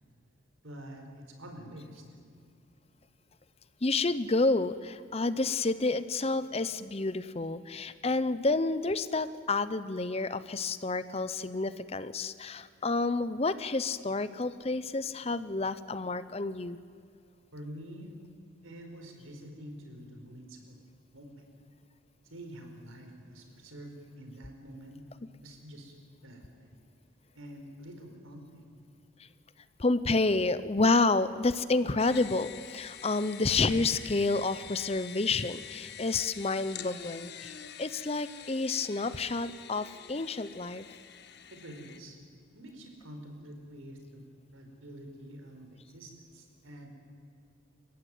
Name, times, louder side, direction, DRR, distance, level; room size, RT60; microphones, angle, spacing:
voice 1, 0.6-2.0 17.5-18.2 18.6-20.8 21.1-21.3 22.2-25.0 25.4-25.9 26.2-26.9 27.3-28.7 41.5-42.2 42.5-44.2 44.5-46.9, equal, 85° right, 3 dB, 4.8 m, -47 dB
voice 2, 3.8-16.8 29.8-37.5 37.8-40.9, left 3 dB, 30° left, 14 dB, 0.7 m, -29 dB
sound 1, 32.0-42.0, left 8 dB, 55° left, 1.2 m, -46 dB
29.5 x 15.5 x 9.3 m, 2.3 s
head